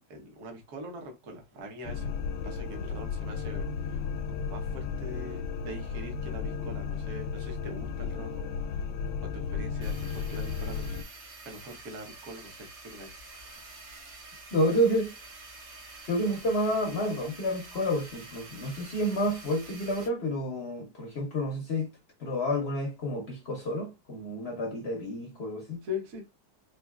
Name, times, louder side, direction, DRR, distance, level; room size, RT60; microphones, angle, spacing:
voice 1, 0.0-2.1 2.4-4.0 4.3-8.8 9.2-11.0 11.4-13.1 13.3-13.7 25.8-26.2, left 2 dB, 50° right, 1.1 m, -43 dB
sound 1, 1.8-11.0, left 6 dB, 85° left, 1.3 m, -34 dB
sound 2, 9.8-20.1, right 3 dB, 75° right, 1.8 m, -48 dB
voice 2, 14.5-15.1 16.1-21.9 22.2-25.8, equal, 55° left, 0.7 m, -29 dB
4.0 x 2.8 x 2.3 m
omnidirectional pair, 2.0 m